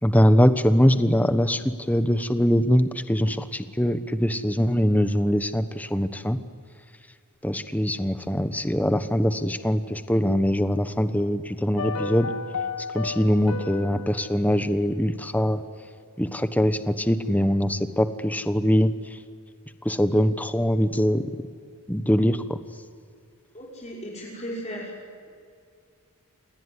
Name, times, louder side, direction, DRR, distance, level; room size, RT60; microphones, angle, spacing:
voice 1, 0.0-6.4 7.4-12.3 12.9-15.6 16.2-19.2 19.8-21.3 21.9-22.6, equal, 5° left, 11 dB, 1.1 m, -22 dB
sound 1, 11.8-16.1 16.3-16.4, left 4 dB, 70° left, 1.5 m, -35 dB
voice 2, 23.5-24.9, equal, 30° left, -3 dB, 5.8 m, -36 dB
28.5 x 19.5 x 9.8 m, 2.3 s
head